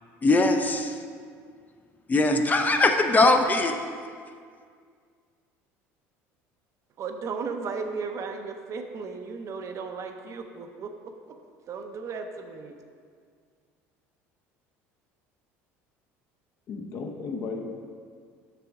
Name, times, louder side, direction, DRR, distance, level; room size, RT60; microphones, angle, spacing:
voice 1, 0.2-0.9 2.1-3.8, left 2 dB, 25° left, 5 dB, 0.5 m, -21 dB
voice 2, 7.0-11.4 11.7-12.8, right 5 dB, 45° right, 5 dB, 0.6 m, -35 dB
voice 3, 16.7-17.7, left 4 dB, 55° left, 3 dB, 0.8 m, -34 dB
6.8 x 6.0 x 3.5 m, 2.1 s
supercardioid pair, 85°, 7 cm